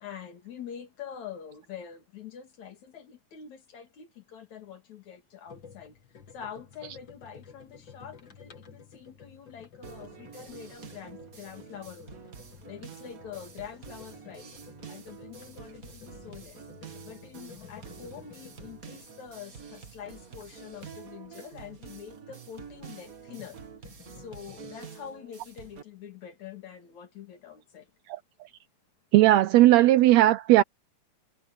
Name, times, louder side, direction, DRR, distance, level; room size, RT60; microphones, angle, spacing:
voice 1, 0.0-5.9 6.3-12.2 12.7-14.5 14.9-16.6 17.0-23.6 24.2-27.8, left 8 dB, 70° left, 3.8 m, -45 dB
sound 1, 5.5-21.9 22.9-24.8, left 6 dB, 40° left, 2.6 m, -52 dB
sound 2, 9.8-25.8, right 6 dB, 35° right, 1.6 m, -47 dB
voice 2, 29.1-30.6, right 15 dB, 80° right, 1.6 m, -17 dB
omnidirectional pair, 3.5 m